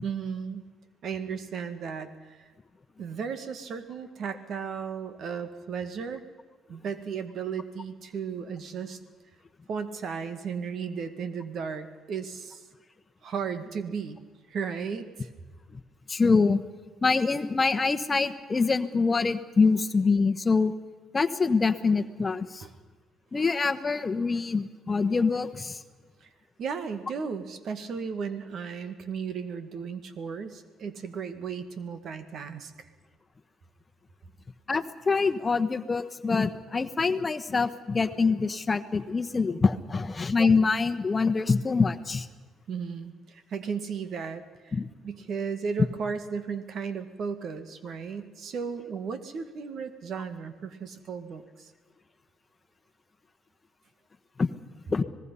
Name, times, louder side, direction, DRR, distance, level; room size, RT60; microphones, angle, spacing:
voice 1, 0.0-0.6 1.0-2.5 3.0-6.2 6.7-9.0 9.7-12.6 13.2-14.2 14.5-15.3 22.6-22.7 26.2-26.3 26.6-32.9 42.7-44.8 45.0-51.7, right 6 dB, 60° right, 10 dB, 1.9 m, -35 dB
voice 2, 16.1-16.6 17.0-20.7 21.1-22.6 23.3-25.8 34.7-42.3 44.7-44.9 54.4-54.5 54.9-55.0, left 4 dB, 30° left, 10 dB, 1.2 m, -25 dB
26.0 x 19.5 x 5.6 m, 1.4 s
supercardioid pair, 75°, 0 cm